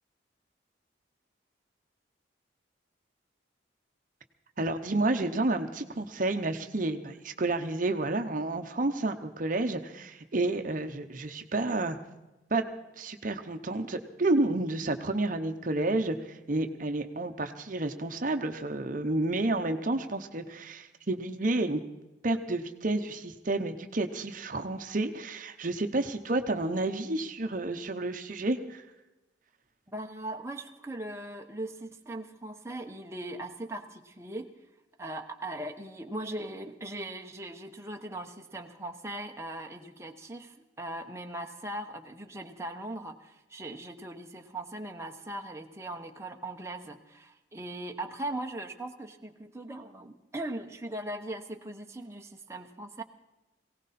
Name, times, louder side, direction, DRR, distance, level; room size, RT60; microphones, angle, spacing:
voice 1, 4.6-12.0 12.5-12.6 13.0-21.8 22.2-28.8, right 2 dB, 45° right, 7 dB, 0.9 m, -30 dB
voice 2, 29.9-34.5 35.0-53.0, right 1 dB, 15° right, 3 dB, 0.9 m, -39 dB
19.5 x 17.5 x 4.2 m, 1.0 s
head